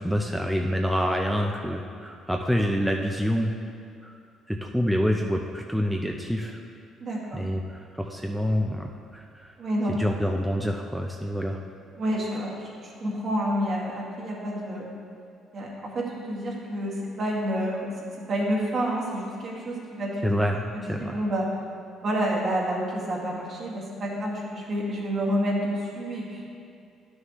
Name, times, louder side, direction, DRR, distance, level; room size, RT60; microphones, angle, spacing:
voice 1, 0.0-3.5 4.0-4.1 4.5-6.6 7.3-9.5 9.9-11.6 20.2-21.2, equal, ahead, 1 dB, 0.5 m, -27 dB
voice 2, 7.0-7.4 9.6-10.3 12.0-14.9 15.5-17.9 18.3-20.5 20.7-21.5 22.0-26.5, equal, 50° right, -4 dB, 2.0 m, -29 dB
10.5 x 6.5 x 3.1 m, 2.4 s
cardioid pair, 95°, 0 cm